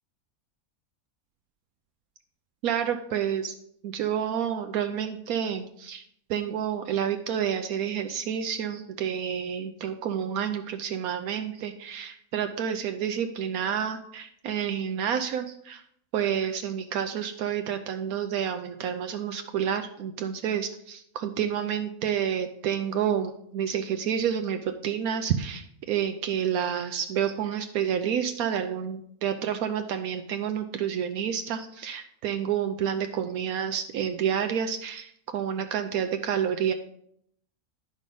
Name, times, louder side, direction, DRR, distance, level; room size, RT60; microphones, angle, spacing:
voice 1, 2.6-3.5 3.8-6.0 6.3-15.8 16.1-36.7, right 8 dB, 80° right, 7 dB, 1.1 m, -29 dB
10.5 x 5.2 x 5.3 m, 0.70 s
omnidirectional pair, 1.5 m